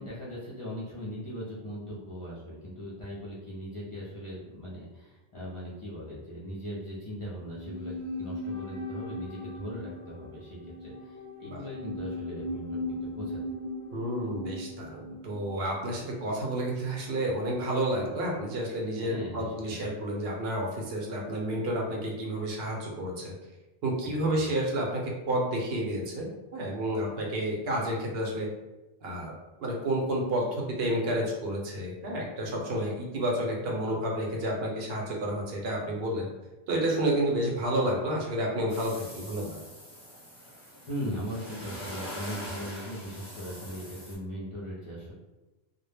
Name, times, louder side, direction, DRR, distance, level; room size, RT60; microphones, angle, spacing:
voice 1, 0.0-13.4 19.0-19.8 24.0-24.5 40.9-45.1, equal, 45° left, -7 dB, 0.4 m, -39 dB
sound 1, 7.4-16.7 17.0-17.1, left 1 dB, 45° right, 0.6 m, -39 dB
voice 2, 13.9-23.3 23.8-28.5 29.0-29.3 29.6-36.3 36.7-39.6, right 1 dB, 70° right, -1 dB, 0.8 m, -30 dB
sound 2, 38.7-44.2, equal, 15° left, 0.8 m, -43 dB
2.1 x 2.0 x 3.2 m, 1.1 s
omnidirectional pair, 1.1 m